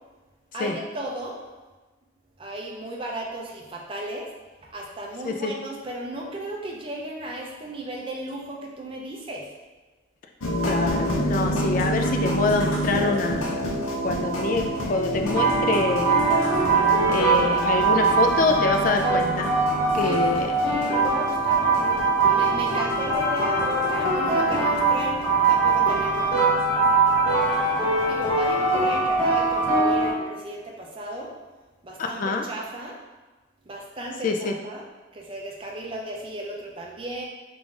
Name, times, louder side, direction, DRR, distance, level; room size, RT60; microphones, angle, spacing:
voice 1, 0.5-1.4 2.4-4.3 4.7-9.5 20.0-25.2 25.5-26.6 27.3-31.3 31.8-33.0 33.7-34.8 35.1-37.2, right 1 dB, 25° right, -1 dB, 0.5 m, -35 dB
sound 1, 10.4-29.0, equal, 80° left, 0.6 m, -30 dB
voice 2, 10.6-13.7 14.0-16.2 17.1-19.5 19.9-20.5 32.0-32.4 34.2-34.5, left 3 dB, 40° left, 4 dB, 0.3 m, -25 dB
sound 2, 15.2-30.1, right 3 dB, 10° left, 0.9 m, -22 dB
3.6 x 2.5 x 3.5 m, 1.2 s
head